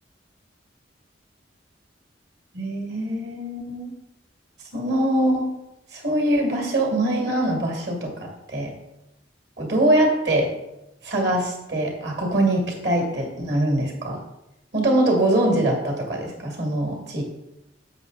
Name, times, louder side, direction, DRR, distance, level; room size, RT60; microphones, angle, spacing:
voice 1, 2.5-4.0 4.7-5.5 5.9-8.7 9.6-10.5 11.0-14.2 14.7-17.2, right 1 dB, 60° right, 1 dB, 2.4 m, -23 dB
7.4 x 7.3 x 4.0 m, 0.89 s
head